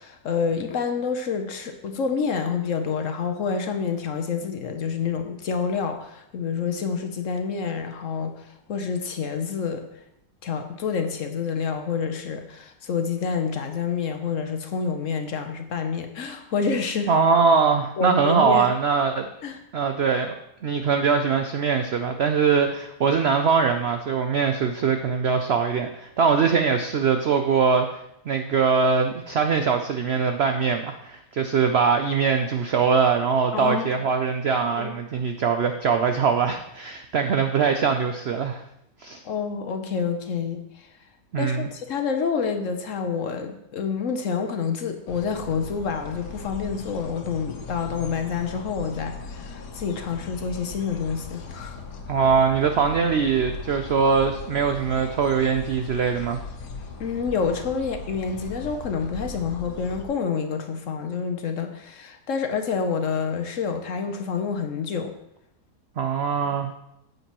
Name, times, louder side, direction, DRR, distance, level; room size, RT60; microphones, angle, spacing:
voice 1, 0.0-9.8 10.4-17.1 18.0-18.7 19.4-19.6 33.5-33.9 34.6-35.0 39.2-40.9 41.4-51.8 57.0-65.1, left 5 dB, 60° left, 6 dB, 1.0 m, -28 dB
voice 2, 17.1-19.3 19.7-20.3 20.6-27.9 28.3-38.6 39.0-39.2 41.3-41.7 52.1-56.4 66.0-66.7, right 5 dB, 70° right, 6 dB, 0.6 m, -22 dB
sound 1, 45.1-60.0, left 4 dB, 85° left, 1.6 m, -38 dB
9.7 x 8.0 x 3.0 m, 0.81 s
omnidirectional pair, 1.7 m